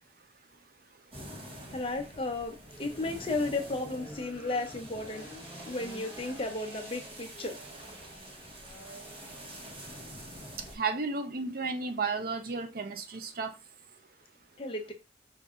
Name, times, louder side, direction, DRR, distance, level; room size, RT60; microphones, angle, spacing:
sound 1, 1.1-10.8, equal, 30° right, 1.3 m, -47 dB
voice 1, 1.7-5.3 5.6-7.6 14.6-14.9, left 2 dB, 30° left, 0.8 m, -34 dB
sound 2, 2.7-10.7, right 1 dB, 10° right, 1.1 m, -50 dB
voice 2, 10.8-13.5, right 4 dB, 50° right, 0.6 m, -33 dB
5.3 x 2.7 x 3.7 m
head